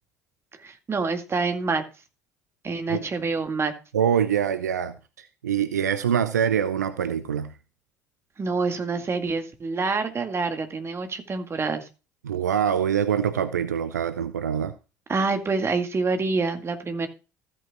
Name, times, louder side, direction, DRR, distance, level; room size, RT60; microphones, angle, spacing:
voice 1, 0.6-1.8 2.6-3.7 8.4-11.8 15.1-17.1, right 4 dB, 30° right, 2.0 m, -26 dB
voice 2, 3.9-7.5 12.2-14.7, right 8 dB, 80° right, 0.5 m, -25 dB
15.0 x 8.6 x 2.3 m
figure-of-eight pair, 55°, 9 cm